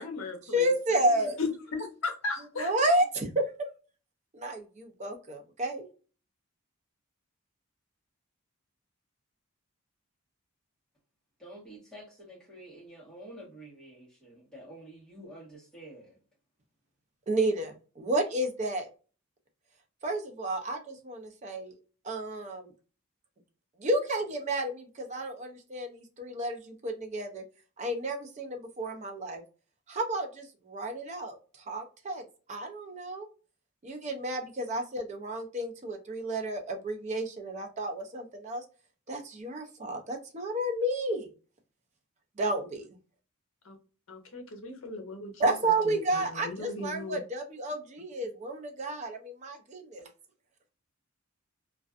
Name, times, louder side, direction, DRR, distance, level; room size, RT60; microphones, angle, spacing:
voice 1, 0.0-2.7 43.6-43.8 44.1-45.5 45.8-47.2, left 3 dB, 65° left, 0.7 m, -37 dB
voice 2, 0.5-1.3 2.6-3.3 4.3-5.9 17.3-18.9 20.0-21.7 22.0-22.7 23.8-27.4 27.8-29.4 29.9-31.4 31.7-32.2 32.5-33.3 33.8-38.6 39.1-41.3 42.4-42.8 45.4-50.1, right 1 dB, 30° right, 0.5 m, -31 dB
voice 3, 11.4-16.2, right 1 dB, 5° left, 1.1 m, -49 dB
2.4 x 2.3 x 2.3 m
head